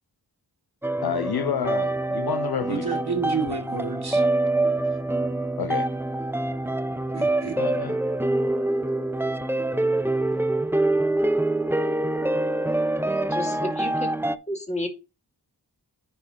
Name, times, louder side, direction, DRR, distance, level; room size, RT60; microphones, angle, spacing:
sound 1, 0.8-14.4, right 2 dB, 5° right, 0.5 m, -25 dB
voice 1, 1.0-3.0 5.6-5.9 7.6-8.0, left 9 dB, 60° left, 0.5 m, -29 dB
voice 2, 2.7-4.2 7.1-7.6, right 5 dB, 60° right, 2.4 m, -30 dB
voice 3, 13.1-14.1 14.5-14.9, left 1 dB, 15° left, 2.1 m, -31 dB
10.0 x 4.8 x 2.9 m
cardioid pair, 50°, 42 cm